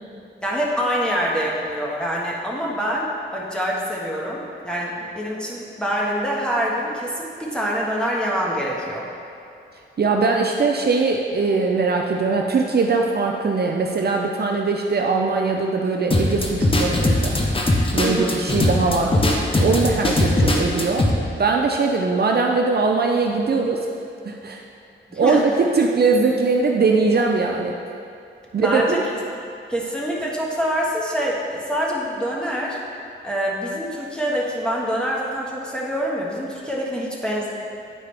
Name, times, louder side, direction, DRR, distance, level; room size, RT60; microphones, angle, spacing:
voice 1, 0.4-9.1 18.0-18.4 19.1-19.4 25.1-25.4 28.6-29.0 29.7-32.8 33.2-37.5, equal, 5° left, -4 dB, 1.5 m, -25 dB
voice 2, 10.0-17.4 17.9-19.2 19.6-21.1 21.4-23.8 24.2-24.6 25.1-27.8 28.5-29.0, right 4 dB, 50° right, 0 dB, 0.6 m, -21 dB
sound 1, 16.1-21.1, left 1 dB, 25° left, 0.9 m, -20 dB
9.8 x 4.7 x 3.4 m, 2.6 s
cardioid pair, 70°, 20 cm